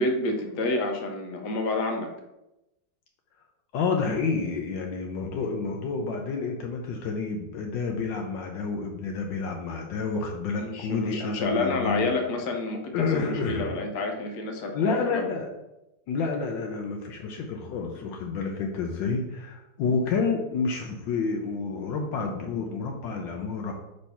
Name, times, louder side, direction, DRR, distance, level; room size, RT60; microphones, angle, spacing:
voice 1, 0.0-2.1 10.6-15.3, left 2 dB, 65° left, 3 dB, 1.4 m, -29 dB
voice 2, 3.7-12.1 12.9-13.8 14.7-15.5 16.1-23.7, left 4 dB, 80° left, 2 dB, 1.3 m, -29 dB
5.4 x 3.3 x 5.6 m, 0.94 s
omnidirectional pair, 2.0 m